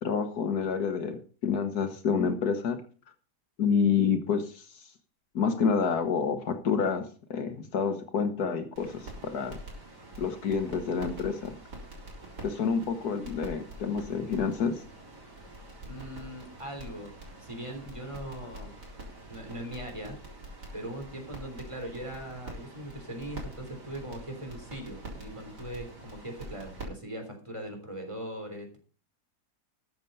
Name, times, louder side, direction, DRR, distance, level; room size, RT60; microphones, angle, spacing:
voice 1, 0.0-2.8 3.6-4.8 5.3-9.6 10.2-11.5 12.4-14.8, left 6 dB, 70° left, 8 dB, 1.7 m, -28 dB
sound 1, 8.7-26.8, right 1 dB, 80° right, 4.6 m, -45 dB
voice 2, 15.9-17.1 17.4-18.7 19.3-20.2 20.7-28.8, right 1 dB, 20° right, 4 dB, 3.5 m, -40 dB
13.5 x 7.7 x 5.5 m, 0.41 s
omnidirectional pair, 1.8 m